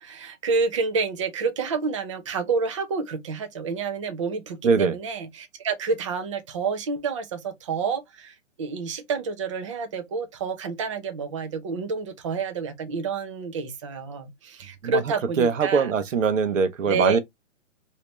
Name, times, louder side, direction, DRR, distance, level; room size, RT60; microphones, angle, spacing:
voice 1, 0.0-15.9 16.8-17.2, right 5 dB, 25° right, 0.6 m, -29 dB
voice 2, 4.6-4.9 14.8-15.0 15.4-17.2, right 5 dB, 85° right, 0.9 m, -22 dB
3.3 x 2.8 x 3.0 m
hypercardioid pair, 165°, 37 cm